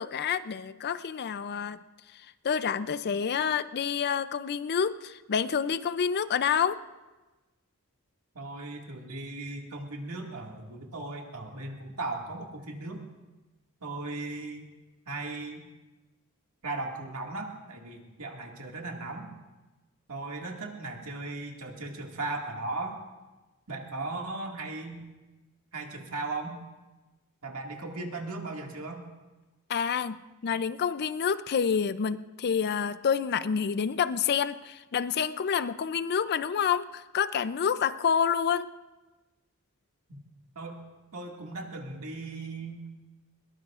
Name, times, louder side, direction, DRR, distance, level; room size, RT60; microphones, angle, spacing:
voice 1, 0.0-1.8 2.1-6.8 29.7-38.7, left 7 dB, 45° left, 14 dB, 0.4 m, -28 dB
voice 2, 8.3-13.0 13.8-14.7 15.1-15.7 16.6-19.4 20.1-23.0 23.7-25.0 25.7-26.6 27.4-29.1 40.1-40.2 40.6-40.8 41.1-42.8, right 2 dB, 70° right, 1 dB, 2.0 m, -37 dB
21.5 x 18.5 x 2.5 m, 1.1 s
head